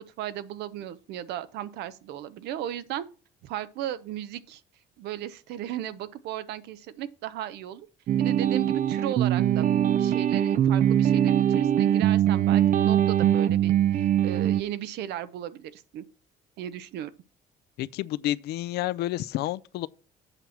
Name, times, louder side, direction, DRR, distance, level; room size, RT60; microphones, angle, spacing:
voice 1, 0.2-3.1 3.4-4.6 5.0-7.9 8.2-9.7 9.9-16.0 16.6-17.1, right 11 dB, 80° right, 0.7 m, -36 dB
sound 1, 8.1-14.6, right 10 dB, 50° right, 0.4 m, -22 dB
voice 2, 17.8-19.9, left 15 dB, 75° left, 0.4 m, -30 dB
8.0 x 4.3 x 7.1 m
cardioid pair, 110°, 17 cm